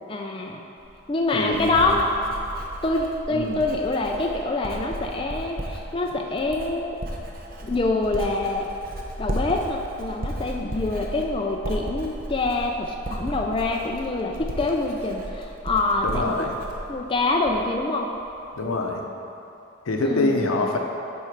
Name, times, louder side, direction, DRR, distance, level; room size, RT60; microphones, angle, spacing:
voice 1, 0.1-0.7 1.1-2.1 2.8-7.0 7.6-8.7 9.2-16.5 16.9-18.1 20.0-20.6, left 2 dB, 25° left, 1 dB, 0.4 m, -25 dB
Writing, 0.8-17.8 18.1-18.6, right 1 dB, 45° right, 0.7 m, -35 dB
voice 2, 1.3-1.9 3.3-3.6 16.0-16.5 18.5-19.0 19.9-20.8, left 2 dB, 80° left, 2 dB, 0.7 m, -25 dB
7.5 x 4.4 x 5.0 m, 2.8 s
head